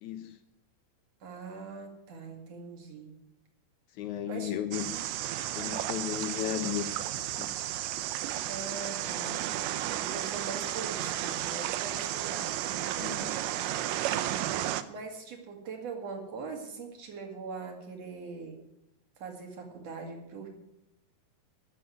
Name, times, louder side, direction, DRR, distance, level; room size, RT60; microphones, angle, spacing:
voice 1, 0.0-0.4 4.0-5.0 5.6-6.9 7.4-7.5 13.0-13.4, left 11 dB, 75° left, 1.9 m, -34 dB
voice 2, 1.2-3.1 4.3-4.6 8.4-9.4 10.0-12.6 14.9-18.6 19.2-20.5, right 4 dB, 55° right, 3.2 m, -41 dB
sound 1, 4.7-14.8, right 13 dB, 80° right, 2.2 m, -33 dB
13.5 x 7.1 x 9.4 m
omnidirectional pair, 3.8 m